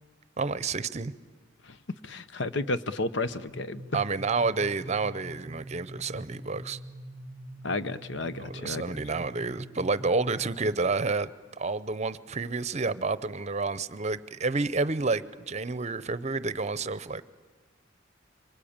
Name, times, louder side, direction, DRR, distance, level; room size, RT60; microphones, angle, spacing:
voice 1, 0.4-1.1 3.9-6.8 8.4-17.3, right 3 dB, 35° right, 15 dB, 0.7 m, -30 dB
voice 2, 1.6-3.8 7.6-9.0, left 2 dB, 70° left, 13 dB, 0.9 m, -32 dB
sound 1, 3.3-10.9, right 1 dB, 40° left, 4.2 m, -44 dB
26.0 x 24.0 x 8.8 m, 1.4 s
head